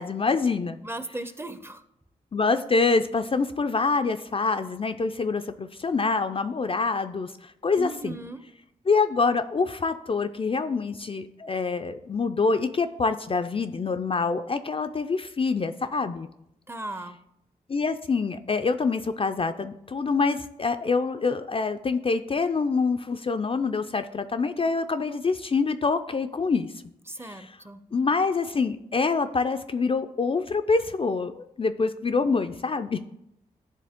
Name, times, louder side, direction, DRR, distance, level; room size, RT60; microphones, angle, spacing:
voice 1, 0.0-0.8 2.3-8.2 8.9-16.3 17.7-26.7 27.3-27.4 27.9-33.0, left 4 dB, 35° left, 8 dB, 0.4 m, -26 dB
voice 2, 0.8-1.8 7.8-8.4 16.7-17.2 27.1-27.8, right 2 dB, 15° right, 11 dB, 0.6 m, -36 dB
10.0 x 3.4 x 3.5 m, 0.80 s
supercardioid pair, 40°, 16 cm